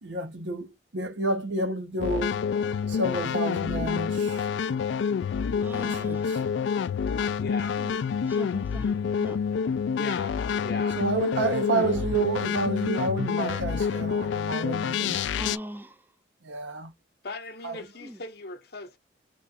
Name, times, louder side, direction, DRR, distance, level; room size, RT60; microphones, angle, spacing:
voice 1, 0.0-2.4 2.9-4.5 5.7-6.4 11.0-15.2 16.4-16.9 17.6-17.8, right 3 dB, 70° right, 0.8 m, -30 dB
sound 1, 2.0-15.6, left 6 dB, 70° left, 0.3 m, -28 dB
voice 2, 5.6-6.5 7.8-9.4 11.2-11.4 11.9-12.0 15.3-16.0 18.0-18.2, equal, 10° right, 0.4 m, -41 dB
voice 3, 7.4-7.8 10.0-11.0 17.2-19.0, left 3 dB, 55° left, 0.7 m, -38 dB
3.1 x 2.4 x 4.1 m
head